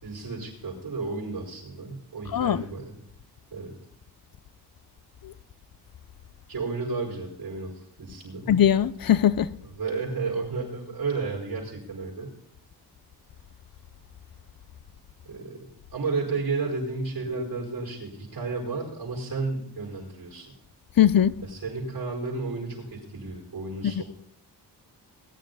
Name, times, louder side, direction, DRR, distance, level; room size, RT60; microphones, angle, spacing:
voice 1, 0.0-3.0 3.5-3.7 6.5-8.5 9.8-12.3 15.2-20.5 21.5-24.0, right 4 dB, 70° right, 5.4 m, -32 dB
voice 2, 2.3-2.6 5.2-5.3 8.5-9.5 21.0-21.3 24.0-24.1, left 10 dB, 55° left, 0.7 m, -20 dB
20.0 x 10.0 x 4.0 m
wide cardioid pair, 90°, 41 cm